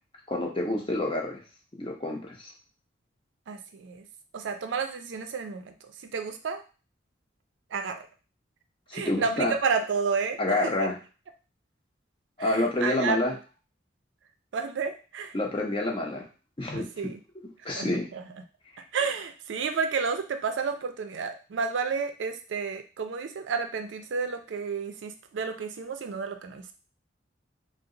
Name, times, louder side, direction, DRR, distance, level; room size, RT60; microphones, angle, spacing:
voice 1, 0.3-1.4 1.8-2.5 8.9-9.5 10.4-11.0 12.4-13.3 15.3-16.2 16.6-18.1, left 1 dB, 25° left, 0 dB, 0.6 m, -28 dB
voice 2, 3.5-4.1 4.3-5.7 6.0-6.6 7.7-8.0 8.9-10.7 12.4-13.4 14.5-15.3 16.8-17.2 17.7-18.2 18.9-26.7, right 5 dB, 80° right, 7 dB, 0.4 m, -31 dB
2.8 x 2.0 x 3.7 m, 0.35 s
head